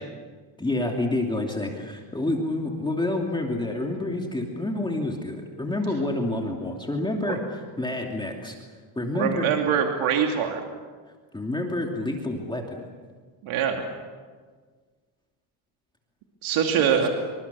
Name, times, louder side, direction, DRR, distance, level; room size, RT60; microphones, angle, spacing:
voice 1, 0.6-8.6 9.0-9.5 11.3-12.8 16.7-17.1, left 2 dB, 10° left, 1 dB, 2.7 m, -28 dB
voice 2, 9.1-10.6 13.4-13.8 16.4-17.1, right 8 dB, 75° right, 2 dB, 2.8 m, -23 dB
27.0 x 25.0 x 7.1 m, 1.5 s
cardioid pair, 135°, 49 cm